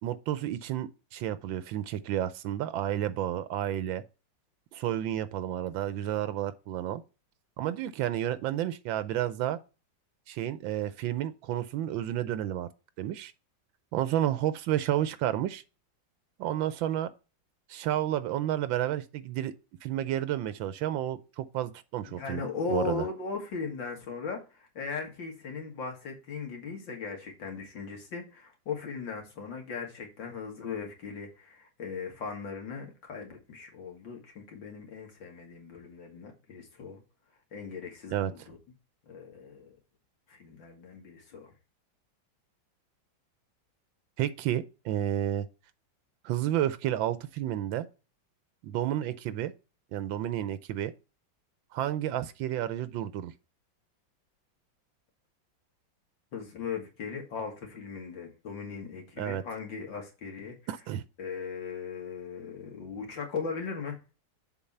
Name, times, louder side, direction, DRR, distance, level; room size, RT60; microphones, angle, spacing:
voice 1, 0.0-4.0 4.7-7.0 7.6-9.6 10.3-12.7 13.0-13.3 13.9-15.6 16.4-17.1 17.7-19.5 19.8-22.4 22.7-23.0 38.1-38.5 44.2-45.5 46.2-47.9 48.6-49.5 49.9-50.9 51.7-53.3 59.2-59.4 60.7-61.0, right 12 dB, 85° right, 1.4 m, -31 dB
voice 2, 22.1-24.4 24.7-37.0 37.5-38.6 39.1-39.8 40.3-41.5 56.3-60.5 61.2-64.0, left 5 dB, 75° left, 2.9 m, -38 dB
7.2 x 4.7 x 5.5 m
omnidirectional pair, 2.1 m